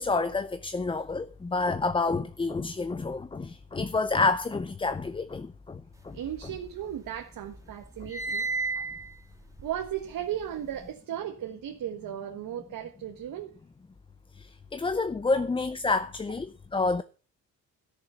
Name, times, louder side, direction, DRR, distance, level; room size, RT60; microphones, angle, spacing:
voice 1, 0.0-6.2 14.4-17.0, left 3 dB, 15° left, 0.5 m, -29 dB
sound 1, 6.1-7.1 7.5-10.9, right 3 dB, 10° right, 2.2 m, -35 dB
voice 2, 6.1-8.5 9.6-13.5, right 10 dB, 75° right, 1.7 m, -36 dB
13.5 x 6.8 x 6.8 m
cardioid pair, 135°, 34 cm